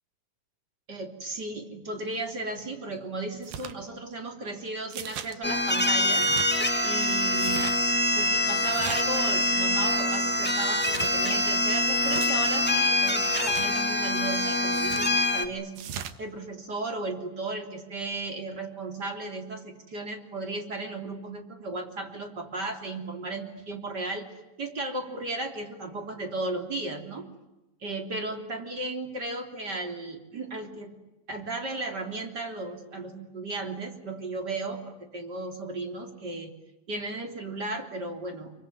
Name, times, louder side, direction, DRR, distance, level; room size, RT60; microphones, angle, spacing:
voice 1, 0.9-6.3 6.8-7.7 8.2-15.7 16.2-24.3 24.6-27.3 27.8-30.9 31.3-36.5 36.9-38.5, right 2 dB, 30° right, 4 dB, 3.7 m, -35 dB
sound 1, 3.4-3.7 4.9-5.3 6.0-6.5 7.3-7.8 8.6-9.2 10.7-11.2 11.9-12.3 13.3-13.7 14.7-15.1 15.8-16.2, right 9 dB, 75° right, 3.0 m, -38 dB
sound 2, 5.4-15.5, left 1 dB, 5° left, 1.1 m, -25 dB
26.0 x 24.0 x 9.6 m, 0.99 s
omnidirectional pair, 4.1 m